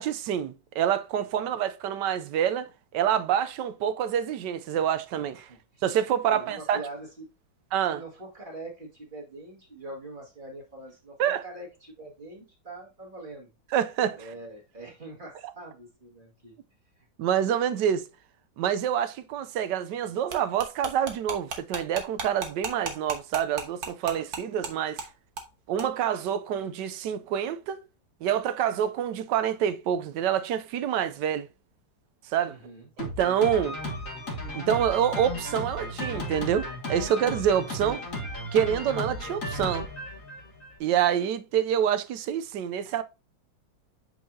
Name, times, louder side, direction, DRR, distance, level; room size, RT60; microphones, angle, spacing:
voice 1, 0.0-5.5 5.8-6.8 7.7-8.0 11.2-11.4 13.7-14.3 17.2-18.0 18.6-25.1 25.7-27.8 28.2-31.5 32.3-32.5 33.0-33.8 34.5-38.0 38.5-39.9 40.8-43.0, right 9 dB, 75° right, 1.2 m, -27 dB
voice 2, 5.5-5.8 6.2-7.2 7.9-11.2 11.4-13.5 14.2-16.6 17.0-17.1 32.5-32.9, right 2 dB, 25° right, 2.1 m, -43 dB
sound 1, 20.3-24.7 25.0-25.1 25.4-25.5 25.8-25.9, right 4 dB, 55° right, 1.4 m, -34 dB
Drum kit, 33.0-40.8, left 1 dB, 45° left, 1.8 m, -35 dB
8.1 x 4.7 x 2.7 m
omnidirectional pair, 2.1 m